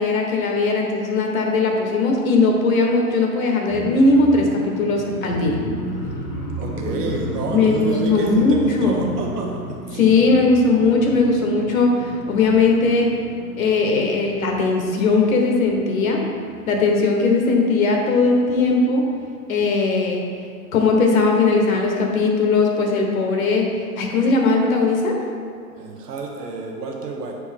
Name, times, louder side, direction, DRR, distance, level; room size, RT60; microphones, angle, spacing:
voice 1, 0.0-5.6 6.9-7.0 7.5-9.0 9.9-13.1 13.5-16.2 16.7-19.0 19.5-20.2 20.7-25.2, left 3 dB, 60° left, 1 dB, 1.2 m, -19 dB
sound 1, 3.7-17.5 18.0-18.3 18.7-19.0, equal, 20° left, 0.6 m, -34 dB
voice 2, 6.6-9.5 9.9-10.1 25.7-27.3, right 3 dB, 80° right, 1 dB, 1.0 m, -29 dB
6.9 x 4.5 x 3.4 m, 2.3 s
hypercardioid pair, 160°, 47 cm